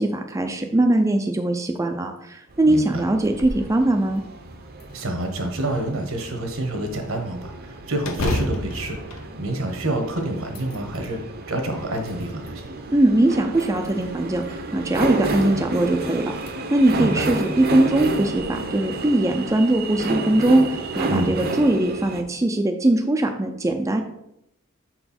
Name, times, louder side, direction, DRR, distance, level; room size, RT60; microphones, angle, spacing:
voice 1, 0.0-4.2 12.9-14.4 14.7-16.3 16.7-24.0, right 1 dB, 15° right, 4 dB, 0.4 m, -21 dB
sound 1, 2.5-22.2, right 2 dB, 45° right, 0.7 m, -31 dB
voice 2, 2.7-3.0 4.9-11.2 11.5-12.7 17.0-17.3 21.1-21.3, right 1 dB, 70° right, 4 dB, 1.2 m, -28 dB
sound 2, 3.2-3.7 4.2-4.3 4.8-5.6 8.0-10.0 10.4-11.1 11.8-12.6 13.5-14.2 15.7-15.8 16.3-16.5 17.0-17.1 18.1-18.4, left 1 dB, 90° left, 0.8 m, -32 dB
6.3 x 4.5 x 4.2 m, 0.79 s
head